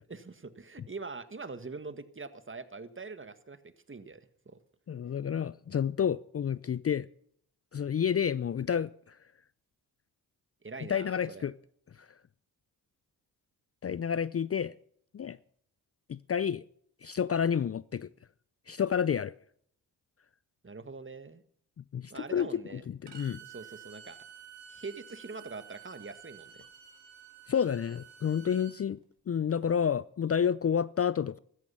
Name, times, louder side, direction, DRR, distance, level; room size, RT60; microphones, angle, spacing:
voice 1, 0.1-4.6 10.6-11.4 20.6-21.4 22.1-22.9 23.4-24.2 24.7-26.6, right 4 dB, 30° right, 1.7 m, -43 dB
voice 2, 4.9-7.1 7.7-9.2 10.9-11.5 12.0-12.1 13.8-14.7 15.1-15.4 16.1-16.6 17.0-18.1 18.7-19.3 21.9-22.6 22.9-23.4 27.5-29.0 29.3-31.4, left 8 dB, 35° left, 0.5 m, -30 dB
Bowed string instrument, 23.1-28.8, right 8 dB, 75° right, 3.2 m, -51 dB
15.0 x 14.0 x 5.6 m
supercardioid pair, 50°, 41 cm